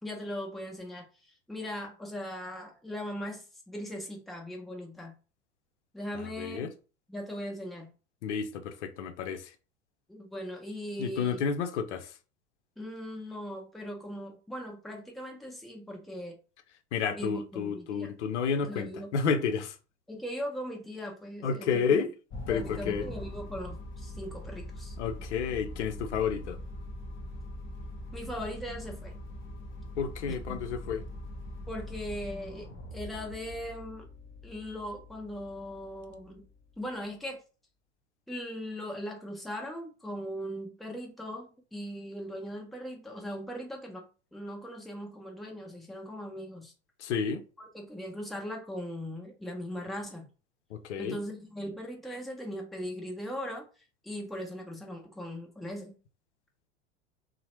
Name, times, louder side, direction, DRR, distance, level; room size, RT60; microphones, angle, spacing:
voice 1, 0.0-5.1 5.9-6.7 7.1-7.9 10.1-11.4 12.8-16.4 17.1-18.1 18.6-19.1 20.1-22.0 22.5-24.9 28.1-29.1 30.5-30.6 31.7-34.1 34.4-36.4 36.8-37.4 38.3-44.0 44.3-46.7 47.6-50.3 51.0-53.7 54.0-55.9, equal, ahead, 0.6 m, -39 dB
voice 2, 6.1-6.7 8.2-9.5 11.0-12.1 16.9-19.8 21.4-22.1 22.5-23.1 25.0-26.6 30.0-31.0 47.0-47.4 50.7-51.2, left 6 dB, 70° left, 0.6 m, -31 dB
sound 1, 22.3-36.8, left 1 dB, 35° left, 0.9 m, -42 dB
2.8 x 2.0 x 3.0 m
figure-of-eight pair, 80°, 36 cm